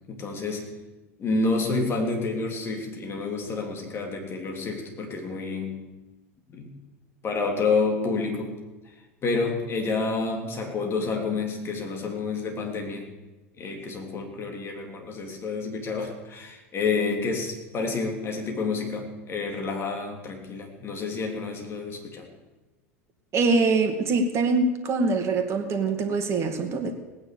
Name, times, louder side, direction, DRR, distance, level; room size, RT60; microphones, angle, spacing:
voice 1, 0.1-0.7 1.2-5.8 6.5-6.8 7.2-8.6 9.2-13.1 13.6-22.3, left 4 dB, 30° left, 2 dB, 3.5 m, -29 dB
voice 2, 23.3-26.9, right 3 dB, 35° right, 6 dB, 2.3 m, -24 dB
18.0 x 9.6 x 7.1 m, 1.1 s
figure-of-eight pair, 75°, 8 cm